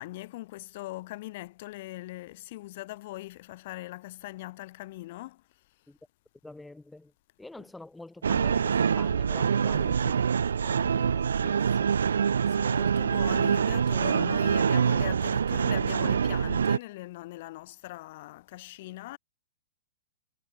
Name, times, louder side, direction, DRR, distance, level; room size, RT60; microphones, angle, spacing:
voice 1, 0.0-5.4 9.7-10.0 12.5-19.2, left 18 dB, 50° left, 1.6 m, -41 dB
voice 2, 6.4-7.1 7.4-10.2 10.6-12.0, left 2 dB, 5° left, 1.4 m, -46 dB
sound 1, 8.2-16.8, right 7 dB, 70° right, 0.3 m, -25 dB
figure-of-eight pair, 110°, 0 cm